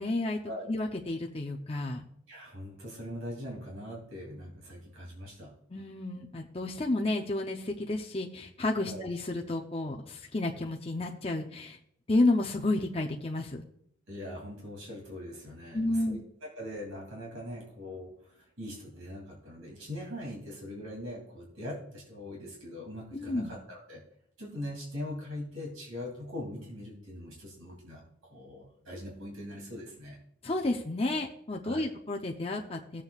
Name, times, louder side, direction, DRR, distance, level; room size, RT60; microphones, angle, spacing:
voice 1, 0.0-0.4 0.7-2.0 5.7-11.8 12.1-13.6 15.7-16.2 23.1-23.5 30.4-33.0, left 2 dB, 30° left, 1 dB, 0.6 m, -31 dB
voice 2, 2.3-5.5 8.8-9.0 14.1-24.0 24.4-28.0 28.3-30.2 31.6-31.9, left 1 dB, 80° right, -2 dB, 2.8 m, -41 dB
17.5 x 7.5 x 2.4 m, 0.71 s
head